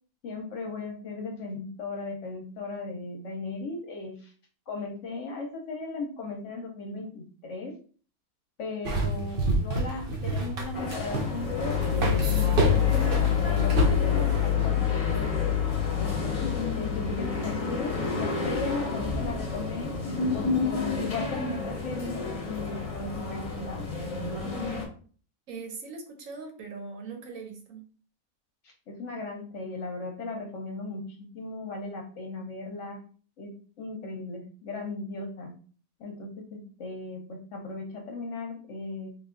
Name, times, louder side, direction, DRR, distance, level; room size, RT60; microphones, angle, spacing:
voice 1, 0.2-4.3 4.7-7.8 8.6-11.8 12.0-15.2 16.0-20.0 20.3-23.9 28.6-33.0 33.4-35.5 36.0-39.1, left 3 dB, 60° left, 2 dB, 0.9 m, -37 dB
sound 1, 8.8-14.5, right 1 dB, 50° right, 0.7 m, -29 dB
sound 2, 10.7-24.8, left 6 dB, 35° left, 0.6 m, -28 dB
voice 2, 25.5-27.8, right 4 dB, 65° right, 3 dB, 1.0 m, -40 dB
3.4 x 2.3 x 3.7 m, 0.42 s
omnidirectional pair, 1.6 m